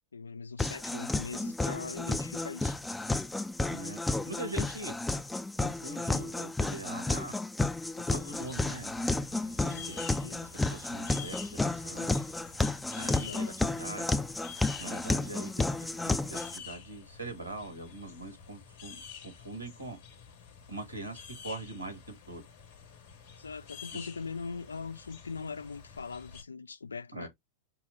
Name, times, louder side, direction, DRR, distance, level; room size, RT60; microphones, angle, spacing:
voice 1, 0.0-2.8 9.6-9.9 10.2-10.4 13.0-13.4 15.3-15.4 23.4-27.3, left 5 dB, 75° left, 0.3 m, -41 dB
sound 1, 0.6-16.6, left 2 dB, 5° left, 0.4 m, -32 dB
voice 2, 3.6-4.0 4.3-5.0 5.6-7.3 8.1-8.9 9.9-10.1 10.5-12.2 13.0-14.3 14.8-15.7 16.0-20.0 20.7-22.4 23.9-24.1 27.1-27.3, right 2 dB, 85° right, 2.0 m, -42 dB
sound 2, 8.3-26.4, left 7 dB, 55° left, 1.5 m, -49 dB
5.4 x 2.2 x 4.1 m
figure-of-eight pair, 90°, 0 cm